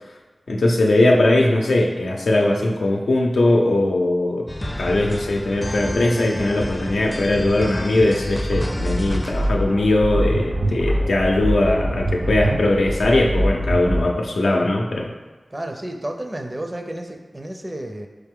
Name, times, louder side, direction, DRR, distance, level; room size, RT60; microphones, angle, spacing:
voice 1, 0.5-4.5 4.8-15.1, left 2 dB, 90° left, 0 dB, 0.5 m, -20 dB
sound 1, 4.5-9.5, left 1 dB, 25° left, 0.5 m, -29 dB
sound 2, 8.5-14.0, equal, 75° right, 0.9 m, -23 dB
voice 2, 15.5-18.1, right 1 dB, 25° right, 4 dB, 0.5 m, -31 dB
4.1 x 3.4 x 3.6 m, 1.2 s
cardioid pair, 45°, 0 cm